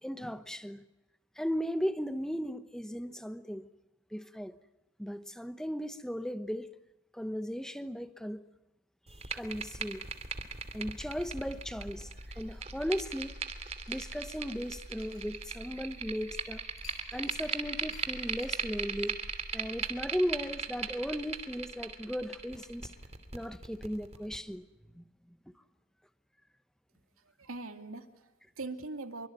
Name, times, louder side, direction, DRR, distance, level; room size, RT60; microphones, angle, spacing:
voice 1, 0.0-0.8 1.4-3.7 4.1-4.6 5.0-6.7 7.1-8.4 9.1-10.0 10.7-13.3 13.9-16.6 17.1-19.2 19.5-22.9 23.3-24.6 24.9-25.0, equal, 5° left, 1.0 m, -36 dB
sound 1, 9.1-24.4, right 5 dB, 30° right, 2.7 m, -39 dB
sound 2, 13.6-16.0 16.8-17.5 17.9-18.1 18.4-18.6, left 8 dB, 75° left, 7.9 m, -56 dB
voice 2, 27.2-29.3, right 3 dB, 85° right, 2.6 m, -42 dB
27.0 x 24.5 x 9.0 m
head